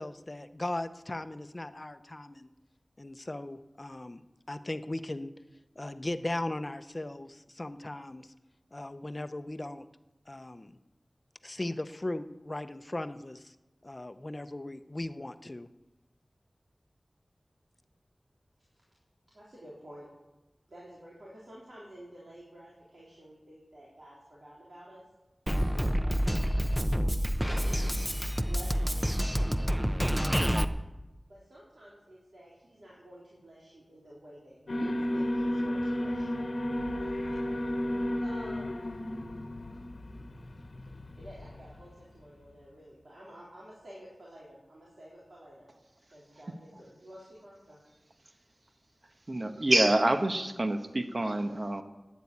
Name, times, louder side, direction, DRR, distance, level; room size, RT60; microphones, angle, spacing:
voice 1, 0.0-2.5 3.0-5.3 5.8-8.3 8.7-9.9 10.3-10.8 11.4-13.5 13.8-15.7, left 1 dB, 35° left, 11 dB, 0.8 m, -38 dB
voice 2, 19.3-20.1 20.7-25.0 25.8-26.5 26.8-27.9 28.5-29.1 30.2-30.7 31.2-36.4 38.2-39.3 41.2-45.7 46.1-47.8, right 1 dB, 75° right, -6 dB, 3.7 m, -50 dB
Drum kit, 25.5-30.6, equal, 5° right, 0.7 m, -28 dB
Alarm, 34.7-41.8, left 1 dB, 75° left, 1.1 m, -33 dB
voice 3, 49.3-51.8, right 1 dB, 45° right, 7 dB, 1.2 m, -27 dB
12.5 x 9.4 x 8.6 m, 1.0 s
wide cardioid pair, 65°, 0 cm